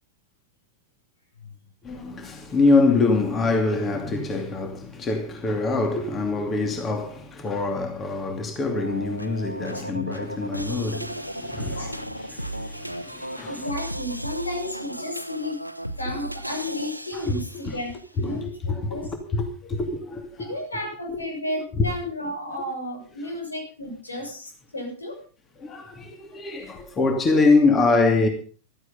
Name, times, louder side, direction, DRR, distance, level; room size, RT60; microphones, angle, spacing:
voice 1, 1.8-13.6 17.2-17.3 17.6-17.8 18.2-20.6 21.1-21.2 21.7-21.9 25.6-28.3, left 3 dB, 20° left, 2.6 m, -24 dB
sound 1, 8.7-17.9, right 1 dB, 90° right, 0.9 m, -35 dB
voice 2, 13.5-15.6 16.0-19.1 20.4-25.2, left 1 dB, 80° left, 6.9 m, -33 dB
15.5 x 13.0 x 5.5 m
figure-of-eight pair, 90°, 0 cm